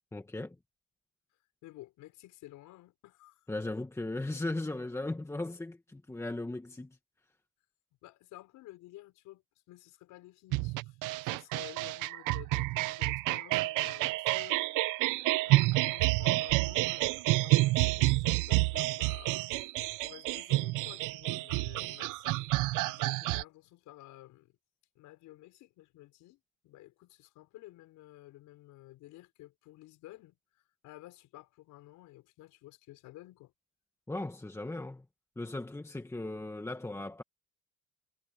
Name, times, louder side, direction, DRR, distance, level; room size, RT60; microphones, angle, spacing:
voice 1, 0.1-0.5 3.5-7.0 34.1-35.0 35.4-37.2, left 2 dB, 10° left, 1.5 m, -37 dB
voice 2, 1.3-3.5 8.0-14.6 15.4-19.5 20.0-22.4 22.8-24.6 24.9-33.5, left 16 dB, 75° left, 6.0 m, -53 dB
sound 1, 10.5-23.4, right 20 dB, 80° right, 0.8 m, -29 dB
cardioid pair, 120°, 31 cm